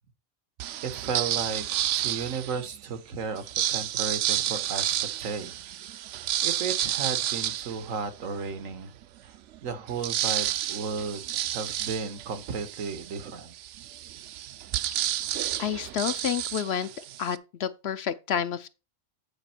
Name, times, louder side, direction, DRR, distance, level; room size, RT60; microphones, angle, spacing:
sound 1, 0.6-2.8 3.3-8.5 9.0-9.1 9.4-17.4, right 12 dB, 70° right, 0.9 m, -31 dB
voice 1, 0.8-1.6 2.0-5.5 6.4-8.9 9.2-9.3 9.6-13.5, right 5 dB, 90° right, 1.5 m, -34 dB
voice 2, 15.6-16.9 17.2-18.7, left 9 dB, 60° left, 0.8 m, -29 dB
8.9 x 5.0 x 4.4 m
omnidirectional pair, 1.3 m